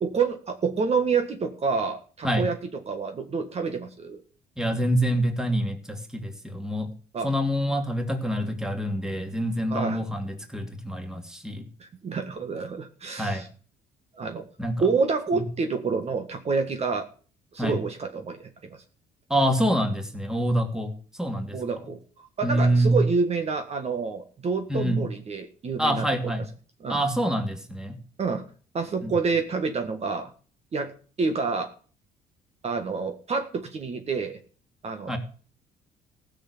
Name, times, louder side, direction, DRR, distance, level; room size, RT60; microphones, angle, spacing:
voice 1, 0.0-2.6 2.9-4.2 7.1-7.3 9.7-10.0 11.8-13.5 14.1-14.4 14.8-17.1 17.5-18.8 21.5-26.1 26.8-27.0 28.2-28.5 28.7-30.3 30.7-30.9 31.2-31.7 32.6-34.4 34.8-35.2, right 4 dB, 40° right, 7 dB, 1.8 m, -28 dB
voice 2, 4.6-6.9 7.2-11.6 13.1-13.4 14.6-14.9 15.3-15.5 17.6-17.8 19.3-20.9 21.2-21.6 22.4-23.0 24.7-25.1 25.8-26.5 26.9-28.0 29.0-29.1 35.1-35.2, right 1 dB, 5° right, 5 dB, 2.7 m, -26 dB
15.5 x 6.7 x 8.5 m, 0.41 s
cardioid pair, 110°, 17 cm